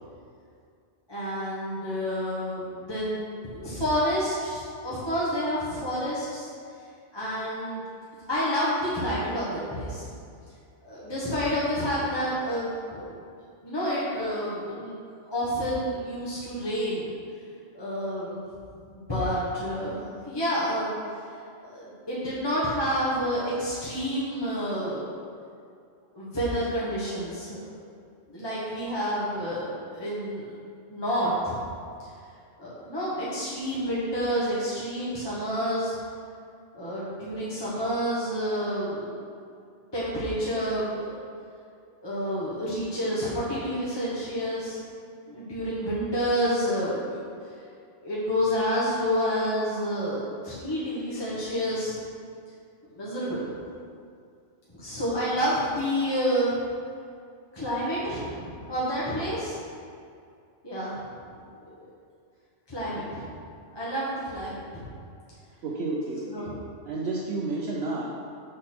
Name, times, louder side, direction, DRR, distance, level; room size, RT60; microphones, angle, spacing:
voice 1, 1.1-3.2 3.4-6.5 7.1-7.8 8.3-10.1 10.8-13.2 13.6-14.9 15.3-17.1 17.7-18.4 18.9-20.0 20.3-20.9 21.6-25.0 26.1-27.6 28.3-30.4 30.9-31.6 32.0-32.1 32.6-35.9 36.7-39.3 39.9-41.1 42.0-44.8 45.3-47.2 48.0-52.0 52.9-53.7 54.7-56.6 57.5-59.6 60.6-61.3 61.8-61.9 62.7-63.3 63.7-64.8 66.3-66.5, equal, 20° left, -9 dB, 1.2 m, -29 dB
voice 2, 65.6-66.5 66.9-68.1, right 2 dB, 65° right, -3 dB, 0.9 m, -31 dB
6.5 x 4.1 x 5.9 m, 2.4 s
omnidirectional pair, 1.3 m